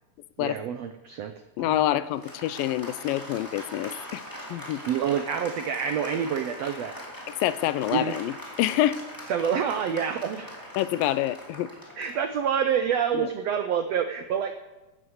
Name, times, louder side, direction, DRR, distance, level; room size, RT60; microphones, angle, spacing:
voice 1, 0.4-1.3 4.6-7.0 7.9-8.2 9.3-10.6 12.0-14.5, right 8 dB, 75° right, 8 dB, 1.5 m, -27 dB
voice 2, 1.6-4.2 4.5-4.8 7.4-9.0 10.8-11.7 13.1-13.3, left 13 dB, 85° left, 15 dB, 2.4 m, -27 dB
Applause, 1.6-13.5, equal, 5° left, 2.5 m, -42 dB
13.0 x 12.0 x 8.0 m, 1.1 s
omnidirectional pair, 4.0 m